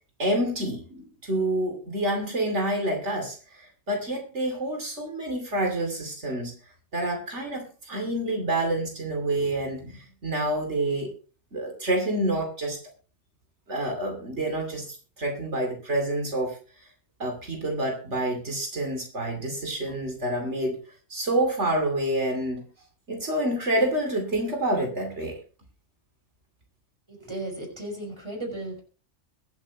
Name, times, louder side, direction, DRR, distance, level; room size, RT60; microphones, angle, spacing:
voice 1, 0.2-6.5 6.9-11.1 11.5-12.8 13.7-16.6 17.2-20.8 21.1-22.6 23.1-25.4, right 1 dB, 80° right, 3 dB, 2.9 m, -28 dB
voice 2, 27.1-28.8, right 1 dB, 25° right, 2 dB, 5.3 m, -35 dB
23.0 x 8.2 x 2.9 m, 0.36 s
omnidirectional pair, 1.2 m